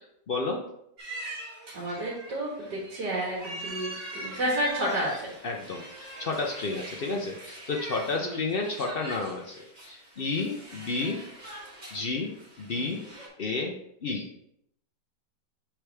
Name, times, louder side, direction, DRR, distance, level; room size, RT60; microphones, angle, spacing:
voice 1, 0.3-0.6 5.4-11.2 11.9-13.0 13.4-13.7 14.0-14.3, left 3 dB, 70° left, 1 dB, 0.5 m, -31 dB
sound 1, 1.0-13.3, right 1 dB, 25° right, 1.5 m, -42 dB
voice 2, 1.7-5.3 8.2-8.4 12.8-12.9, right 1 dB, 75° right, -4 dB, 2.0 m, -31 dB
6.2 x 4.8 x 3.3 m, 0.75 s
omnidirectional pair, 1.8 m